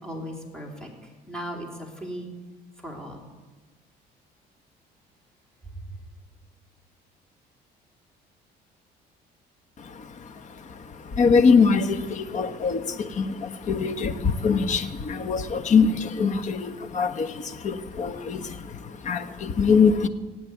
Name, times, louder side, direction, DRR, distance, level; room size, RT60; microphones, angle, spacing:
voice 1, 0.0-2.3 2.8-3.3 5.7-5.8, equal, 5° left, 0 dB, 3.7 m, -37 dB
voice 2, 9.8-20.1, left 5 dB, 45° left, 10 dB, 1.3 m, -23 dB
17.5 x 8.6 x 9.4 m, 1.3 s
cardioid pair, 110°, 17 cm